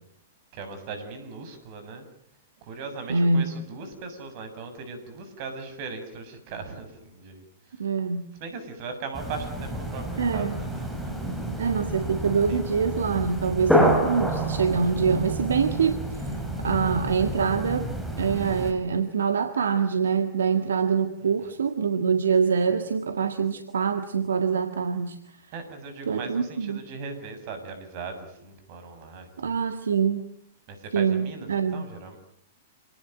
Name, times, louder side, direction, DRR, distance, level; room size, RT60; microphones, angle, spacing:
voice 1, 0.5-2.1 2.6-7.4 8.4-11.4 12.5-12.6 21.2-21.5 25.5-29.6 30.7-32.2, right 4 dB, 45° right, 8 dB, 7.3 m, -39 dB
voice 2, 3.1-3.5 7.8-8.2 10.2-10.6 11.6-16.0 16.6-17.9 18.2-25.2 26.1-26.8 29.4-30.3 30.9-31.8, right 5 dB, 70° right, 8 dB, 1.8 m, -25 dB
sound 1, 9.1-18.7, right 1 dB, ahead, 7.1 m, -28 dB
28.0 x 19.0 x 9.2 m, 0.69 s
figure-of-eight pair, 105°, 0 cm